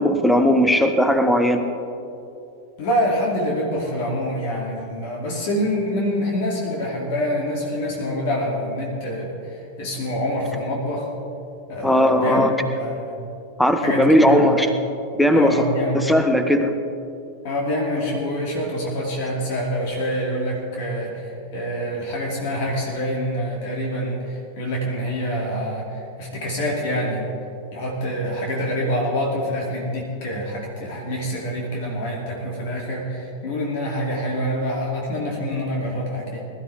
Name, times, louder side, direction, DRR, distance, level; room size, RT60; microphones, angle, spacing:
voice 1, 0.0-1.6 11.8-12.5 13.6-14.7 15.2-15.5 15.9-16.8, equal, 5° left, 7 dB, 1.1 m, -17 dB
voice 2, 2.8-11.1 11.7-13.2 13.7-14.6 15.3-16.1 17.4-27.2 27.7-36.4, equal, 50° left, -2 dB, 2.6 m, -26 dB
22.0 x 12.5 x 3.5 m, 2.7 s
figure-of-eight pair, 90°, 0 cm